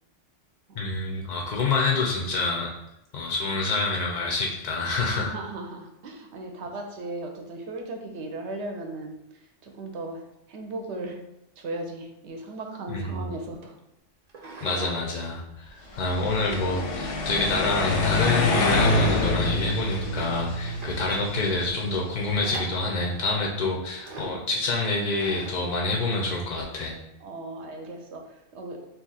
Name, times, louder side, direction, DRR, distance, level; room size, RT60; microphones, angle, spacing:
voice 1, 0.8-2.7 3.1-5.3 12.9-13.3 14.6-27.0, left 3 dB, 60° left, -1 dB, 0.4 m, -27 dB
voice 2, 5.1-11.2 11.6-13.8 15.8-16.0 27.2-28.8, right 2 dB, 70° right, 3 dB, 0.8 m, -37 dB
sound 1, 14.3-15.0 15.4-16.8 17.8-18.6 18.9-19.0 19.6-19.7 20.2-20.3 20.6-21.3 22.4-23.0 24.0-24.4 25.2-25.7, right 3 dB, 45° right, 0.5 m, -41 dB
sound 2, 16.0-22.1, left 2 dB, 90° left, 0.9 m, -26 dB
2.7 x 2.4 x 3.9 m, 0.85 s
omnidirectional pair, 1.3 m